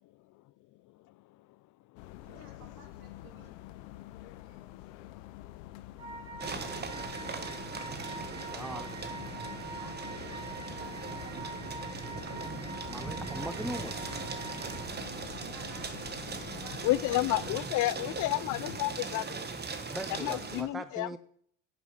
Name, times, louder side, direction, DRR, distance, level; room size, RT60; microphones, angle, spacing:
sound 1, 2.0-17.5, left 15 dB, 85° left, 0.7 m, -47 dB
voice 1, 2.2-3.5 4.4-4.6 6.3-6.4 9.7-12.4 15.3-17.3, right 6 dB, 60° right, 2 dB, 3.3 m, -54 dB
sound 2, 6.0-14.9, right 3 dB, 40° right, 5.2 m, -44 dB
sound 3, 6.4-20.6, right 4 dB, 25° right, 1.3 m, -39 dB
voice 2, 8.5-9.0 12.8-14.2 19.8-21.2, right 1 dB, ahead, 11 dB, 0.5 m, -40 dB
voice 3, 16.8-19.3 20.2-21.1, left 17 dB, 55° left, 20 dB, 0.4 m, -30 dB
10.0 x 7.2 x 5.0 m, 0.63 s
supercardioid pair, 90°, 39 cm